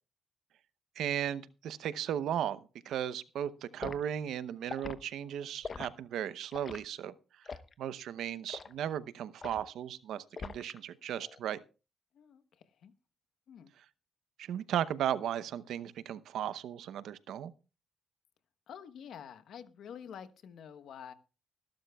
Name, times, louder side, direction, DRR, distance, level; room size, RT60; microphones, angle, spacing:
voice 1, 1.0-2.6 2.8-7.1 7.8-11.6 14.4-17.5, right 10 dB, 75° right, 0.8 m, -36 dB
Liquid, 3.8-4.0 4.6-5.0 5.6-5.9 6.5-6.8 7.4-7.7 8.5-8.7 9.4-9.7 10.4-10.8 11.1-11.4, left 5 dB, 40° left, 0.9 m, -42 dB
voice 2, 12.1-12.9 13.5-13.7 18.7-21.1, left 8 dB, 70° left, 1.1 m, -48 dB
20.5 x 12.0 x 2.3 m
cardioid pair, 90°, 0 cm